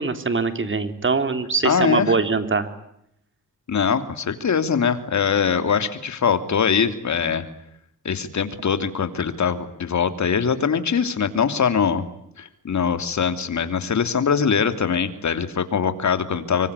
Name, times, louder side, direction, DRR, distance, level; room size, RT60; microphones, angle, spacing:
voice 1, 0.0-2.7, right 4 dB, 35° right, 9 dB, 3.7 m, -22 dB
voice 2, 1.6-2.1 3.7-7.4 8.0-12.0 12.4-16.7, left 6 dB, 60° left, 10 dB, 3.1 m, -22 dB
25.0 x 24.0 x 9.8 m, 0.77 s
cardioid pair, 90°, 32 cm